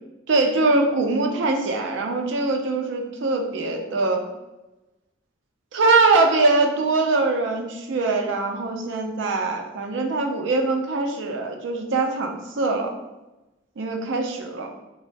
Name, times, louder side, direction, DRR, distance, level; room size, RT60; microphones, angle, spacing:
voice 1, 0.3-4.2 5.7-12.9 13.8-14.7, right 3 dB, 70° right, 3 dB, 0.4 m, -22 dB
3.1 x 2.0 x 2.5 m, 1.0 s
head